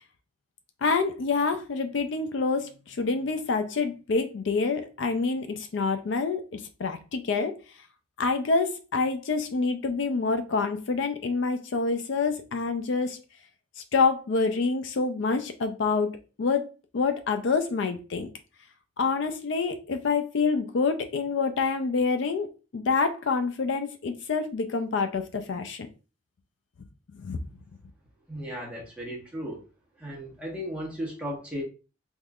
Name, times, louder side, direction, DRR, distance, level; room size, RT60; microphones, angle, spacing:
voice 1, 0.8-7.5 8.2-13.2 13.9-16.1 16.4-16.7 16.9-18.3 19.0-22.5 22.7-25.9 27.2-27.4, left 4 dB, 65° left, 0.4 m, -27 dB
voice 2, 28.3-29.6 30.0-31.6, equal, 5° right, 1.1 m, -35 dB
3.5 x 3.1 x 2.3 m
head